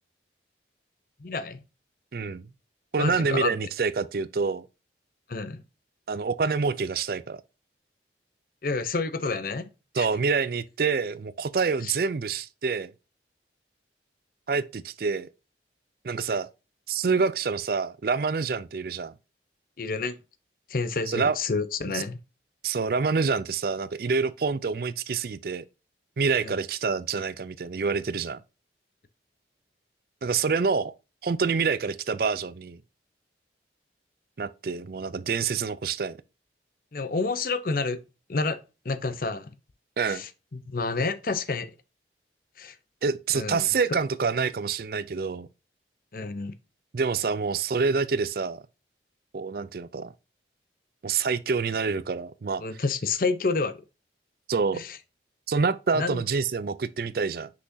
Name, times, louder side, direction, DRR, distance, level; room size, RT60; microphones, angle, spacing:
voice 1, 1.2-1.6 3.0-3.5 5.3-5.6 8.6-9.6 10.0-10.1 11.8-11.9 19.8-20.2 20.7-22.2 26.4-26.5 36.9-38.0 38.3-38.6 38.8-39.5 40.1-41.7 42.6-42.7 43.3-43.7 46.1-46.5 52.6-53.8 54.7-55.0 56.0-56.2, left 4 dB, 50° left, 0.6 m, -29 dB
voice 2, 2.1-2.4 2.9-4.7 6.1-7.4 9.9-12.9 14.5-15.3 16.0-16.5 16.9-19.1 21.1-21.4 21.9-22.0 22.6-25.6 26.2-28.4 30.2-30.9 31.2-32.8 34.4-36.2 40.0-40.2 43.0-45.5 46.9-48.6 49.3-50.1 51.0-52.6 54.5-54.8 55.5-57.5, right 5 dB, 55° right, 0.4 m, -27 dB
6.2 x 5.8 x 2.7 m
head